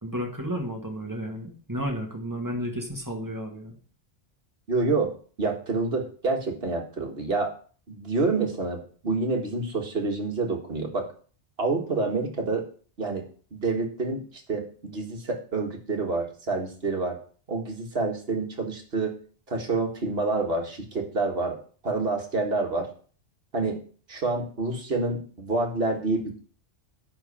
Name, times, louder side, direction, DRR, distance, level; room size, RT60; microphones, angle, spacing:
voice 1, 0.0-3.7, equal, 15° right, 1 dB, 1.8 m, -32 dB
voice 2, 4.7-5.1 5.4-7.5 7.9-11.1 11.6-12.6 13.0-13.2 13.5-17.2 17.5-19.2 19.5-21.6 21.8-22.9 23.5-23.8 24.1-26.4, right 3 dB, 55° right, 2 dB, 1.9 m, -28 dB
10.5 x 3.9 x 7.1 m, 0.42 s
omnidirectional pair, 1.2 m